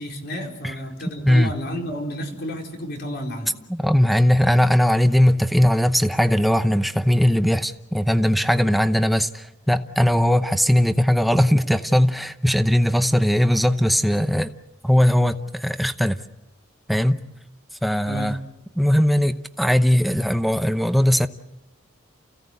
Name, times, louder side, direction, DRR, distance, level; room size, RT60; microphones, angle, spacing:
voice 1, 0.0-3.5 18.1-18.3, equal, 55° left, 4.4 m, -31 dB
voice 2, 3.7-14.5 14.8-16.2 16.9-17.2 17.8-18.4 18.8-21.3, equal, ahead, 0.8 m, -19 dB
29.5 x 16.5 x 8.1 m
head